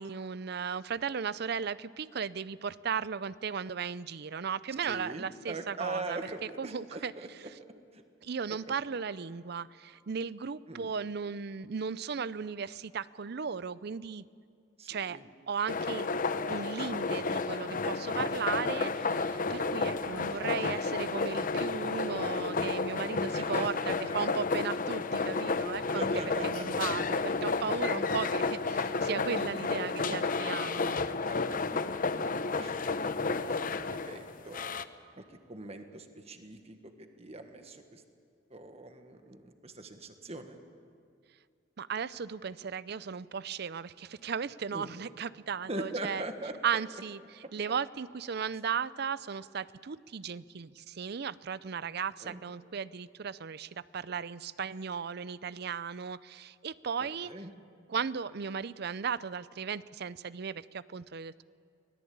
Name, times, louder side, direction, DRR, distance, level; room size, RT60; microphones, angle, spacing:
voice 1, 0.0-7.1 8.2-14.3 14.9-15.2 15.5-16.1 16.5-31.0 41.8-46.2 46.6-57.3 57.9-61.4, right 6 dB, 60° right, 18 dB, 0.5 m, -36 dB
voice 2, 4.8-7.3 7.9-8.0 8.5-8.6 10.7-10.9 14.8-15.3 19.7-20.0 23.4-24.2 26.0-26.7 29.8-29.9 31.2-31.8 32.2-32.7 33.3-34.7 35.2-35.3 35.5-38.0 38.5-40.6 44.7-44.9 45.7-46.6 52.2-52.4 57.0-57.5, right 2 dB, 35° right, 7 dB, 1.6 m, -41 dB
sound 1, 15.7-34.8, left 4 dB, 45° left, 0.8 m, -31 dB
25.0 x 18.0 x 8.7 m, 2.2 s
head